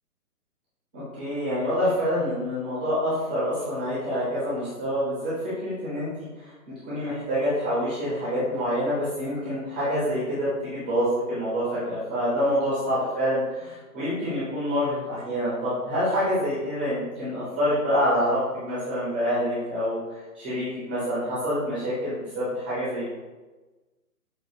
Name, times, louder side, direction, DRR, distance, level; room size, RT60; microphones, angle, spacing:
voice 1, 0.9-5.3 5.6-6.5 6.9-23.1, equal, 5° right, -12 dB, 0.5 m, -27 dB
6.6 x 2.3 x 2.8 m, 1.2 s
hypercardioid pair, 145°, 46 cm